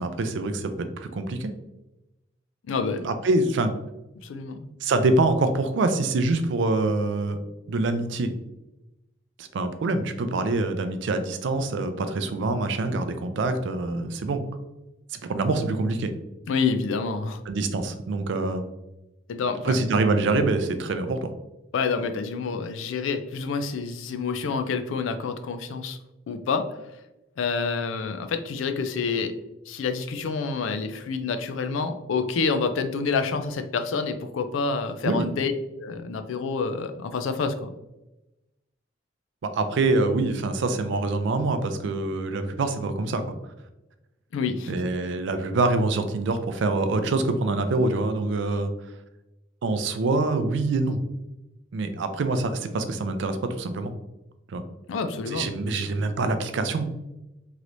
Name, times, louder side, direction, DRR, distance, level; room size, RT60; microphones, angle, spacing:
voice 1, 0.0-1.5 3.0-3.7 4.8-7.4 7.7-8.3 9.4-14.4 15.1-16.1 17.5-18.6 19.6-21.3 35.0-35.3 39.4-43.3 44.7-48.7 49.6-51.0 51.7-54.0 54.5-54.6 55.3-56.9, right 2 dB, 65° right, 9 dB, 0.4 m, -25 dB
voice 2, 2.7-3.1 4.2-4.7 16.5-17.4 19.3-19.8 21.7-26.0 26.3-26.8 27.4-29.3 29.7-35.5 35.8-37.7 44.3-44.8 54.9-55.9, left 4 dB, 80° left, 9 dB, 0.4 m, -28 dB
3.1 x 3.0 x 2.5 m, 0.96 s
head